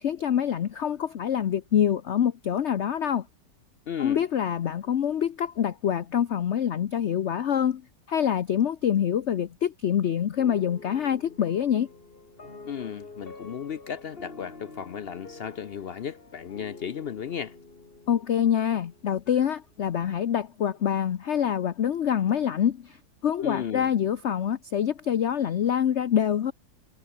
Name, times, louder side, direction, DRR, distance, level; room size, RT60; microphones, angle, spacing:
voice 1, 0.0-3.3 4.0-7.8 8.1-11.9 18.1-23.0 23.2-26.5, left 9 dB, 55° left, 0.8 m, -25 dB
voice 2, 3.9-4.2 12.6-17.6 23.4-23.9, left 8 dB, 80° left, 0.5 m, -35 dB
sound 1, 10.4-19.5, left 3 dB, 30° left, 2.6 m, -47 dB
omnidirectional pair, 2.0 m